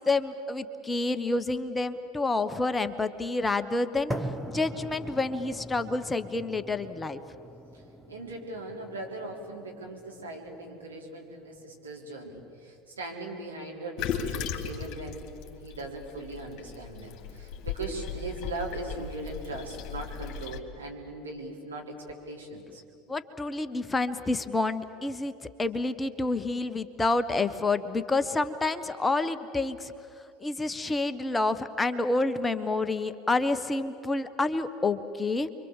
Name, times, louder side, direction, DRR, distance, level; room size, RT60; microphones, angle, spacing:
voice 1, 0.1-4.1 4.5-7.2 23.1-25.3 25.6-29.9 30.4-35.5, left 3 dB, 15° left, 10 dB, 1.3 m, -28 dB
sound 1, 4.1-12.1, right 1 dB, 5° right, 1.6 m, -41 dB
voice 2, 8.1-15.3 15.6-21.9 22.3-22.8, right 2 dB, 85° right, -1 dB, 4.1 m, -39 dB
Toilet flush, 14.0-20.6, left 6 dB, 50° left, 2.6 m, -37 dB
29.0 x 24.0 x 7.4 m, 2.7 s
figure-of-eight pair, 75°, 0 cm